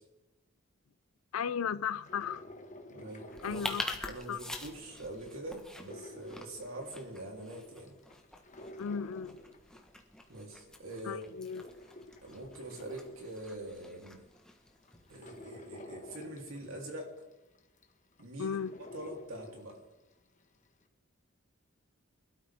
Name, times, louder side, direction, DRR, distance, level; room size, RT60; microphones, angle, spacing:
voice 1, 1.3-2.4 3.4-4.4 8.8-9.4 11.0-11.7 18.4-18.8, left 7 dB, 90° left, 0.4 m, -36 dB
sound 1, 1.9-4.5 4.9-7.3 7.7-10.3 10.7-13.8 14.4-14.5 14.8-20.0 20.4-20.5, left 1 dB, 35° left, 1.4 m, -51 dB
voice 2, 2.9-3.7 4.1-7.9 10.3-11.2 12.2-14.2 15.1-17.1 18.2-18.6 18.9-19.8, right 1 dB, 75° right, 3.3 m, -44 dB
sound 2, 3.3-15.4, left 1 dB, 5° left, 1.3 m, -46 dB
22.5 x 12.5 x 3.5 m
head